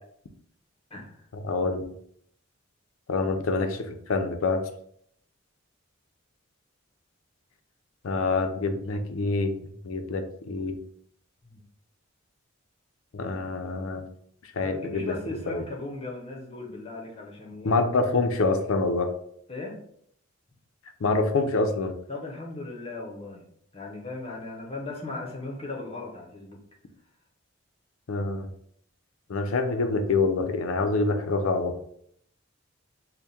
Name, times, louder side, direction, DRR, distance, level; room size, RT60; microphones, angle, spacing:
voice 1, 0.9-1.2 11.4-11.6 14.6-17.9 19.5-19.8 22.1-23.5 23.7-26.6, left 2 dB, 30° left, -1 dB, 0.8 m, -37 dB
voice 2, 1.4-1.8 3.1-4.6 8.0-9.5 9.8-10.8 13.1-14.1 14.5-15.6 17.6-19.1 21.0-21.9 28.1-28.5 29.3-31.7, left 3 dB, 90° left, 7 dB, 0.5 m, -26 dB
3.5 x 2.2 x 4.2 m, 0.67 s
head